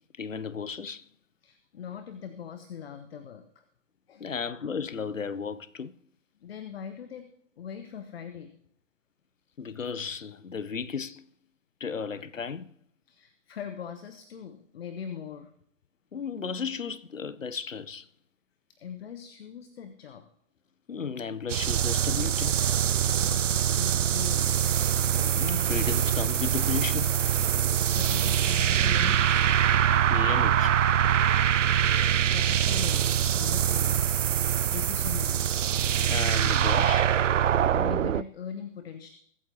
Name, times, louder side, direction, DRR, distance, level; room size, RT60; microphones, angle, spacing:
voice 1, 0.2-1.1 4.2-5.9 9.6-11.3 11.8-12.7 16.1-18.1 20.9-22.6 25.1-27.2 30.1-30.8 32.0-32.2 36.0-37.1, left 6 dB, 80° left, 0.7 m, -34 dB
voice 2, 1.4-3.6 4.1-4.3 6.4-7.3 7.6-8.5 13.1-15.5 18.7-20.3 23.1-24.5 27.7-29.5 32.1-35.7 37.7-39.1, left 8 dB, 50° left, 1.2 m, -41 dB
sound 1, 21.5-38.2, right 9 dB, 75° right, 0.5 m, -24 dB
22.5 x 9.0 x 2.8 m
figure-of-eight pair, 115°, 38 cm